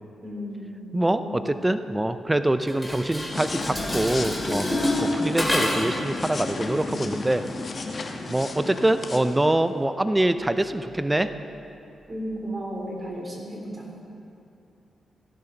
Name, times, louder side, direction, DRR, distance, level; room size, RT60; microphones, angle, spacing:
voice 1, 0.2-1.5 12.1-13.9, equal, 30° right, -2 dB, 3.6 m, -35 dB
voice 2, 0.9-4.7 5.0-7.4 8.3-11.3, right 1 dB, 15° right, 11 dB, 0.6 m, -24 dB
Dishes pots and pans, 2.7-6.0, left 1 dB, 5° left, 2.8 m, -27 dB
sound 1, 3.3-9.8, left 3 dB, 50° left, 1.3 m, -33 dB
16.0 x 11.5 x 4.0 m, 2.7 s
cardioid pair, 55°, 0 cm